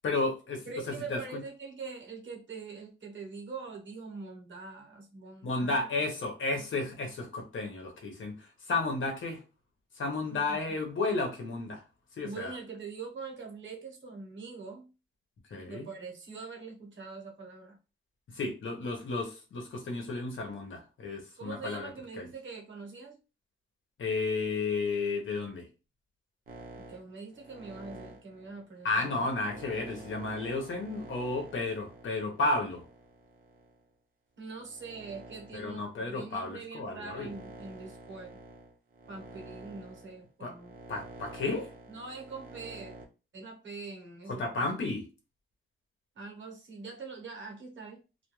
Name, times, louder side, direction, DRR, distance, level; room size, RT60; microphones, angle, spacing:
voice 1, 0.0-1.4 5.4-9.4 10.0-11.8 12.2-12.6 15.5-15.9 18.3-21.9 22.2-22.3 24.0-25.7 28.8-32.8 35.5-37.3 40.4-40.5 40.9-41.7 44.3-45.0, left 3 dB, 70° left, 0.8 m, -33 dB
voice 2, 0.7-6.1 10.3-10.6 12.2-14.9 15.6-17.8 21.4-23.2 26.8-29.2 34.4-38.4 39.1-40.8 41.9-43.0 43.3-44.8 46.1-48.0, right 4 dB, 65° right, 0.9 m, -43 dB
sound 1, 26.5-33.8 34.4-43.1, right 2 dB, 45° right, 0.6 m, -49 dB
2.3 x 2.2 x 3.0 m
wide cardioid pair, 170°, 21 cm